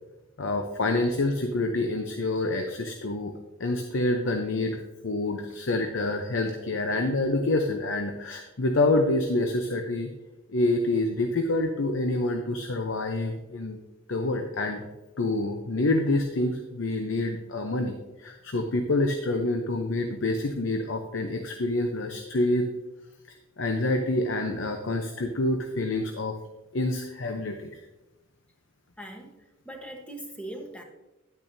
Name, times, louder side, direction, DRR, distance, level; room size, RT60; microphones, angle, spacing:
voice 1, 0.4-3.3 3.6-4.8 5.0-10.1 10.5-13.8 14.1-14.9 15.2-22.7 23.6-26.3 26.7-27.7, left 2 dB, 70° left, 4 dB, 0.7 m, -27 dB
voice 2, 29.0-30.8, right 1 dB, 5° left, 2 dB, 1.0 m, -41 dB
10.5 x 9.0 x 2.7 m, 1.0 s
head